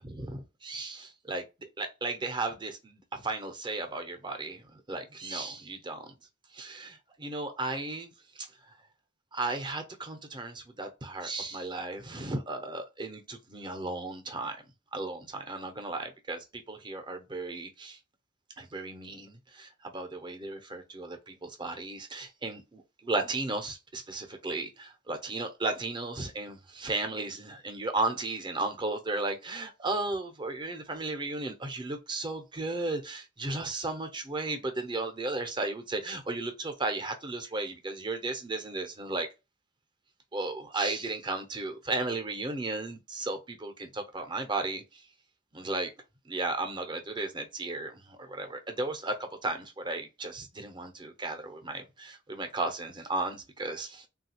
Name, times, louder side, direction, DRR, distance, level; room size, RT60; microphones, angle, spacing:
voice 1, 0.0-1.4 1.8-4.6 4.9-6.1 6.5-8.1 8.4-8.5 9.3-14.6 14.9-18.0 18.6-39.3 40.3-44.8 45.5-45.9 46.3-54.1, right 2 dB, 25° right, 0.6 m, -35 dB
3.2 x 2.3 x 2.7 m
head